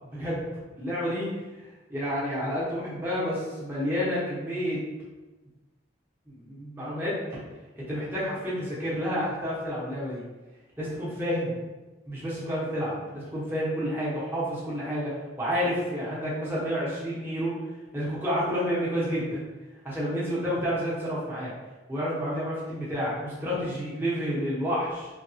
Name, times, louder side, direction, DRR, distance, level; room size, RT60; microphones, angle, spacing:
voice 1, 0.1-0.5 0.8-1.3 1.6-4.8 6.3-7.4 7.8-10.2 10.8-11.6 12.1-17.6 17.9-19.4 19.8-21.5 21.9-25.1, equal, 10° right, -8 dB, 0.8 m, -30 dB
3.4 x 2.3 x 2.7 m, 1.2 s
head